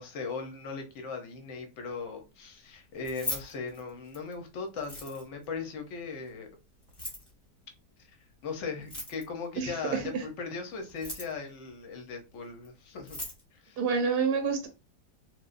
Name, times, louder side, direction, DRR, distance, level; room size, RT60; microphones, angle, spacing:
voice 1, 0.0-6.5 8.4-13.2 13.5-13.8, left 4 dB, 65° left, 0.7 m, -38 dB
Keys jangling, 2.9-4.3 4.8-5.5 6.8-7.3 8.8-9.5 10.8-11.5 12.6-12.7 13.0-13.4, left 2 dB, 20° left, 0.7 m, -39 dB
voice 2, 9.6-10.2 13.8-14.7, right 5 dB, 75° right, 1.1 m, -28 dB
3.2 x 2.1 x 2.4 m
omnidirectional pair, 1.9 m